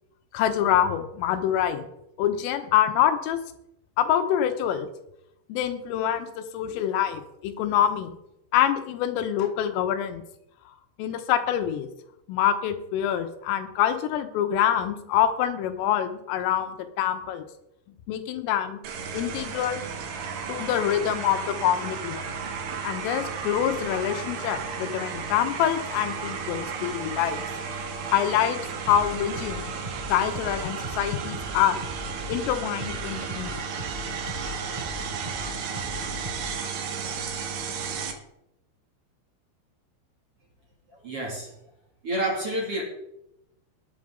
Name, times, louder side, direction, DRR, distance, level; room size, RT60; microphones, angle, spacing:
voice 1, 0.3-1.9 2.2-3.4 4.0-4.9 5.5-8.2 8.5-10.2 11.0-11.9 12.3-17.5 18.1-18.8 19.1-19.8 20.5-22.2 22.8-27.4 28.1-28.6 28.9-29.7 30.1-31.8 32.3-33.6, left 10 dB, 85° left, 8 dB, 3.7 m, -25 dB
sound 1, 18.8-38.1, right 6 dB, 65° right, 3.3 m, -34 dB
sound 2, 28.9-36.6, left 1 dB, 10° right, 3.2 m, -39 dB
voice 2, 40.9-41.6 42.0-42.8, right 1 dB, 35° right, -2 dB, 2.8 m, -29 dB
20.0 x 8.6 x 3.8 m, 0.83 s
omnidirectional pair, 5.7 m